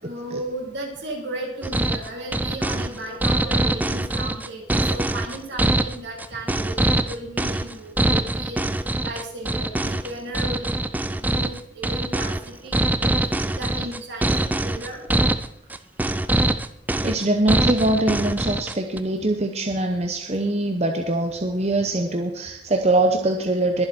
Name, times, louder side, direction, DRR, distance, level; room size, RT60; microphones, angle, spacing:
voice 1, 0.0-8.7 9.0-10.7 11.2-13.1 13.5-15.0, right 1 dB, 65° right, -1 dB, 3.8 m, -35 dB
sound 1, 1.6-19.0, right 1 dB, 10° right, 0.4 m, -23 dB
voice 2, 17.0-23.9, right 2 dB, 35° right, 4 dB, 0.8 m, -23 dB
21.5 x 7.5 x 4.4 m, 0.79 s
head